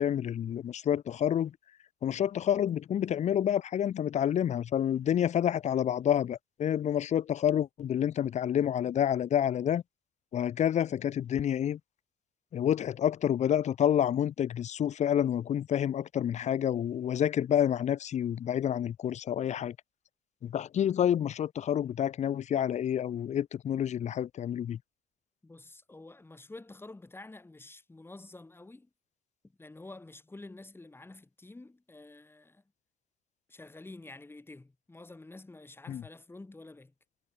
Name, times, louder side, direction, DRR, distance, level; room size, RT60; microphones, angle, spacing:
voice 1, 0.0-1.5 2.0-9.8 10.3-11.8 12.5-19.8 20.4-24.8 35.9-36.0, left 10 dB, 45° left, 0.7 m, -28 dB
voice 2, 25.4-28.9 29.6-32.6 33.5-36.9, left 2 dB, 15° left, 7.5 m, -49 dB
cardioid pair, 110°, 17 cm